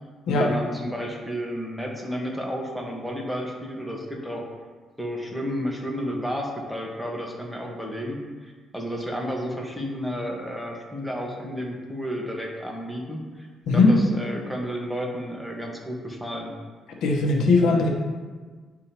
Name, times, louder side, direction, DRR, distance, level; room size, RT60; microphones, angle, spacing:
voice 1, 0.3-4.5 5.0-13.5 13.7-16.6, equal, ahead, -1 dB, 1.4 m, -32 dB
voice 2, 17.0-17.9, left 3 dB, 80° left, 0 dB, 1.0 m, -19 dB
10.5 x 3.7 x 2.9 m, 1.4 s
cardioid pair, 90°, 0 cm